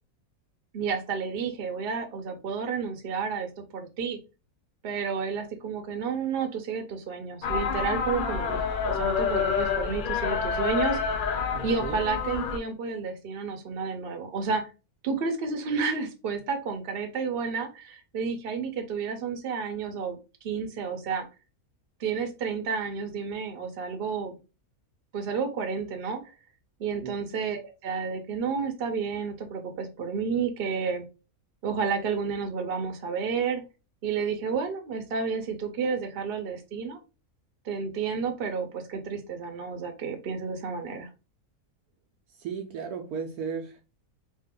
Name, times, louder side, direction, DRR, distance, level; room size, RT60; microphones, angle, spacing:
voice 1, 0.7-4.2 4.8-11.0 11.6-14.7 15.0-20.2 20.4-21.3 22.0-24.4 25.1-26.2 26.8-31.0 31.6-33.6 34.0-37.0 37.6-41.1, right 5 dB, 50° right, 6 dB, 0.8 m, -31 dB
sound 1, 7.4-12.6, left 6 dB, 85° left, 0.4 m, -28 dB
voice 2, 11.5-12.0 27.0-27.2 42.4-43.8, right 6 dB, 85° right, 3 dB, 1.1 m, -35 dB
3.2 x 2.5 x 3.6 m, 0.30 s
omnidirectional pair, 1.6 m